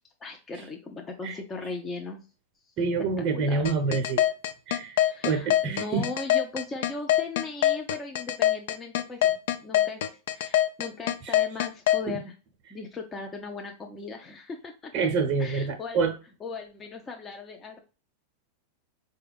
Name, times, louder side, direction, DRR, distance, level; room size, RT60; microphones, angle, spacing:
voice 1, 0.2-2.3 2.7-2.8 3.2-3.7 4.9-9.3 9.6-12.3 12.7-14.9 15.4-16.0 16.4-17.8, left 3 dB, 20° left, 2 dB, 0.6 m, -38 dB
voice 2, 2.8-4.2 4.7-5.0 5.2-6.1 12.1-12.2 14.9-16.1, right 4 dB, 40° right, 3 dB, 0.6 m, -27 dB
sound 1, 3.6-12.0, left 12 dB, 70° left, 0.4 m, -23 dB
4.2 x 2.3 x 3.3 m, 0.35 s
hypercardioid pair, 105°, 0 cm